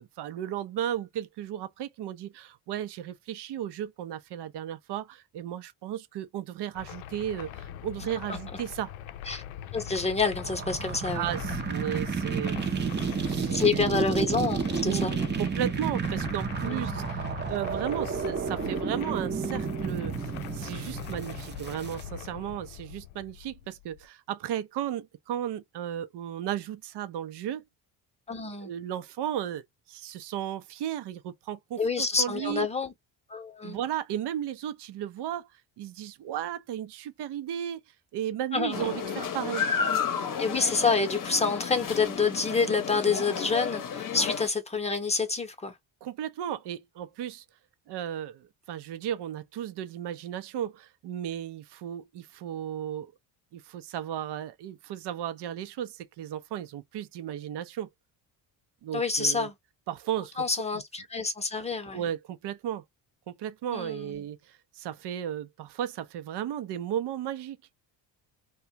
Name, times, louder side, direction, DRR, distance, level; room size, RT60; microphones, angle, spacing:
voice 1, 0.0-8.9 11.1-13.8 14.8-27.6 28.6-32.7 33.6-35.5 35.8-37.8 38.1-39.7 46.0-47.4 47.9-53.1 53.5-57.9 58.8-59.5 59.9-60.4 61.6-61.7 61.9-62.8 63.3-67.6, right 10 dB, 60° right, 0.7 m, -35 dB
sound 1, 6.7-24.1, left 11 dB, 80° left, 0.5 m, -42 dB
voice 2, 9.7-11.3 13.5-15.1 16.6-17.0 28.3-28.7 31.8-32.9 33.3-33.8 38.5-39.0 40.4-45.8 58.9-59.5 60.4-62.0 63.7-64.2, left 4 dB, 15° left, 0.8 m, -28 dB
sound 2, 10.4-22.0, right 6 dB, 20° right, 0.7 m, -31 dB
sound 3, 38.7-44.5, left 6 dB, 40° left, 0.8 m, -32 dB
2.4 x 2.3 x 2.8 m
cardioid pair, 100°, 47 cm